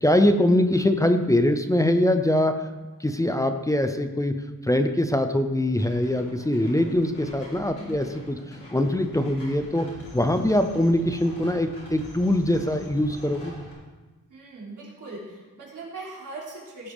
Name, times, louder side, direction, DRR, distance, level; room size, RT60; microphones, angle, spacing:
voice 1, 0.0-2.6 3.0-4.4 4.7-9.9 10.1-13.5, left 1 dB, 10° left, 7 dB, 0.5 m, -23 dB
sound 1, 5.8-13.7, left 1 dB, 40° left, 4.2 m, -44 dB
voice 2, 7.7-8.0 14.3-16.9, right 3 dB, 60° right, -4 dB, 3.4 m, -40 dB
16.5 x 9.0 x 3.6 m, 1.2 s
wide cardioid pair, 180°, 35 cm